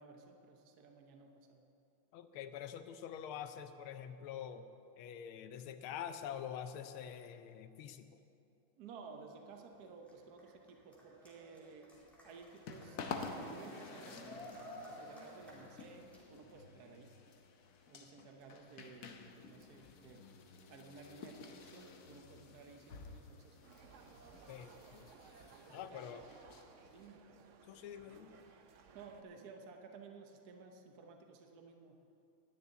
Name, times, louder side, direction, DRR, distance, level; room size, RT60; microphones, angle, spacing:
voice 1, 0.0-1.6 8.8-11.9 12.2-13.0 13.3-17.1 17.9-20.2 20.7-23.6 25.7-26.2 26.9-27.3 28.9-32.0, right 4 dB, 55° right, 3 dB, 1.3 m, -55 dB
voice 2, 2.1-4.7 5.0-8.1 24.5-25.1 25.7-26.2 27.7-28.3, left 9 dB, 90° left, 10 dB, 1.5 m, -46 dB
Cheering, 9.5-16.5, equal, ahead, 2.2 m, -55 dB
sound 1, 11.9-27.1, left 4 dB, 60° left, 1.0 m, -51 dB
sound 2, 23.6-29.2, right 5 dB, 85° right, 0.6 m, -59 dB
10.5 x 6.8 x 9.4 m, 2.7 s
omnidirectional pair, 2.3 m